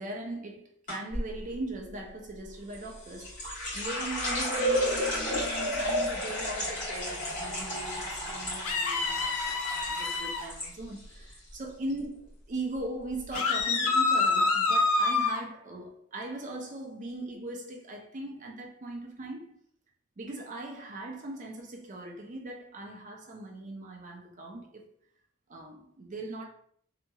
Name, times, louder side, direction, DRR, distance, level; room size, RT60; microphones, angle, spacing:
voice 1, 0.0-19.6 20.2-24.9 25.5-26.4, right 2 dB, 35° right, 0.5 m, -40 dB
sound 1, 0.9-1.3 2.7-10.7 11.0-11.6 11.9-12.2 12.9-13.0 13.3-13.4, equal, 35° left, 1.5 m, -32 dB
sound 2, 8.6-10.4 13.3-15.4, left 3 dB, 85° left, 0.5 m, -27 dB
2.8 x 2.8 x 2.3 m
head